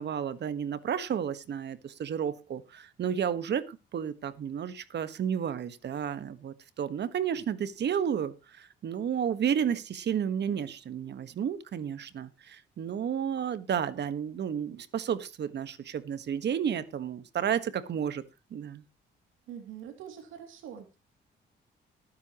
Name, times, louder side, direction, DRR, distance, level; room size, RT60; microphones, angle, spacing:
voice 1, 0.0-18.2 18.5-18.8, right 8 dB, 60° right, 13 dB, 1.5 m, -32 dB
voice 2, 19.5-21.0, right 9 dB, 90° right, 5 dB, 2.8 m, -44 dB
19.0 x 9.5 x 3.1 m, 0.28 s
cardioid pair, 90°, 20 cm